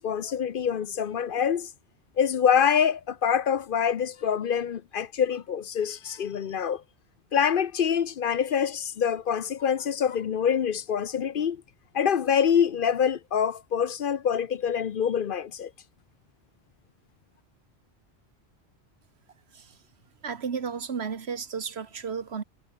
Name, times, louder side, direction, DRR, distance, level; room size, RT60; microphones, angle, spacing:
voice 1, 0.0-1.7 2.2-6.8 7.3-11.6 11.9-15.7, left 8 dB, 60° left, 0.8 m, -25 dB
voice 2, 20.2-22.4, right 6 dB, 80° right, 1.6 m, -33 dB
omnidirectional pair, 1.1 m